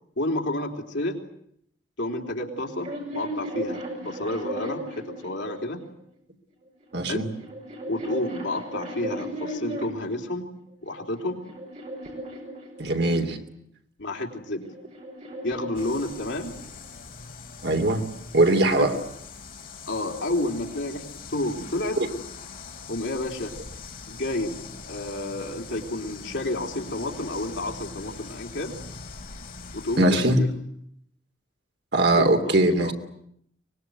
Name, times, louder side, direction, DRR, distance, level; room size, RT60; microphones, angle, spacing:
voice 1, 0.2-1.2 2.0-5.8 7.1-7.3 7.9-10.5 10.8-11.4 14.0-14.7 15.4-16.5 18.8-18.9 19.9-22.0 22.9-23.6 24.1-24.6 24.9-28.8 29.7-30.5 32.2-32.5 32.8-32.9, left 1 dB, 75° left, 1 dB, 3.7 m, -30 dB
sound 1, 2.5-5.9 6.8-10.2 10.9-13.3 14.3-16.7, right 1 dB, 35° right, 6.7 m, -36 dB
voice 2, 6.9-7.3 12.8-13.4 17.6-18.0 18.3-19.0 22.0-22.1 30.0-30.4 31.9-32.9, right 1 dB, 60° right, 5 dB, 2.8 m, -21 dB
sound 2, 15.7-30.0, left 4 dB, 45° left, 3.1 m, -42 dB
24.5 x 21.0 x 9.5 m, 0.71 s
head